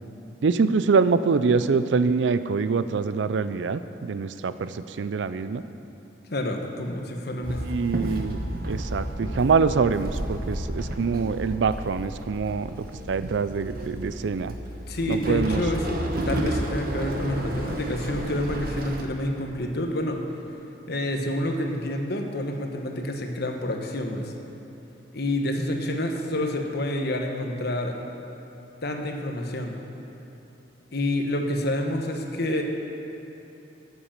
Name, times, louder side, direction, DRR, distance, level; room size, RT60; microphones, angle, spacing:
voice 1, 0.4-5.6 7.7-8.4 8.7-14.5 15.1-15.6, right 5 dB, 75° right, 13 dB, 0.4 m, -24 dB
voice 2, 6.3-7.8 14.9-16.0 16.3-20.2 20.9-24.3 25.1-27.9 28.8-29.8 30.9-32.6, left 1 dB, 60° left, 3 dB, 1.1 m, -28 dB
Walk footsteps / Chatter / Hiss, 7.4-19.0, right 1 dB, 55° right, 1.1 m, -32 dB
9.9 x 8.3 x 7.2 m, 3.0 s
head